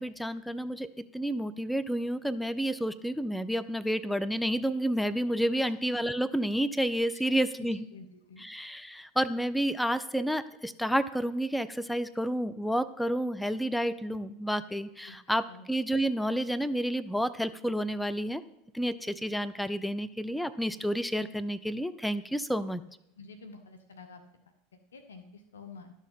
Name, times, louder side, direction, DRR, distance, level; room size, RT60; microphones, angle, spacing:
voice 1, 0.0-7.9 8.4-18.4 18.7-22.8, equal, 5° left, 14 dB, 0.5 m, -30 dB
voice 2, 7.9-8.4 15.0-15.2 15.5-15.6 23.2-24.2 24.7-25.9, left 4 dB, 85° left, 7 dB, 0.9 m, -49 dB
12.0 x 6.4 x 5.7 m, 0.84 s
hypercardioid pair, 90°, 0 cm